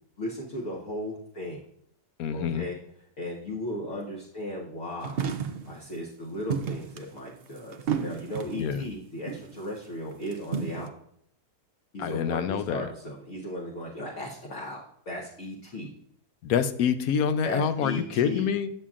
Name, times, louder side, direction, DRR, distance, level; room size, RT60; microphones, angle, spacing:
voice 1, 0.2-1.6 2.3-2.8 3.2-5.2 5.7-10.9 11.9-15.9 17.4-18.5, left 1 dB, 50° left, -3 dB, 1.4 m, -36 dB
voice 2, 2.2-2.7 8.6-8.9 12.0-12.9 16.4-18.7, left 7 dB, 70° left, 11 dB, 1.0 m, -26 dB
sound 1, 5.0-5.7 6.5-8.7 9.3-9.6 10.1-10.9, right 7 dB, 70° right, 0.5 m, -32 dB
9.5 x 7.1 x 2.4 m, 0.68 s
omnidirectional pair, 1.8 m